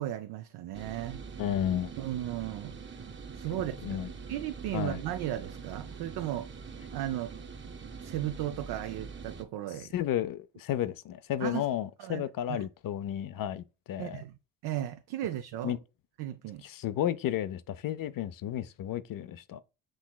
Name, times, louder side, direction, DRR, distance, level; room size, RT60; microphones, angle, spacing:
voice 1, 0.0-1.2 2.0-3.0 3.3-4.0 4.3-6.5 6.9-7.3 8.0-9.9 11.4-11.6 12.0-12.7 14.0-14.3 14.6-15.8 16.2-16.6, right 13 dB, 70° right, 0.5 m, -35 dB
sound 1, 0.7-9.4, right 5 dB, 30° right, 0.8 m, -44 dB
voice 2, 1.4-1.9 3.8-4.1 4.7-5.0 9.8-14.2 15.6-15.8 16.6-19.6, left 11 dB, 55° left, 0.5 m, -32 dB
6.3 x 3.0 x 2.3 m
supercardioid pair, 70°, 41 cm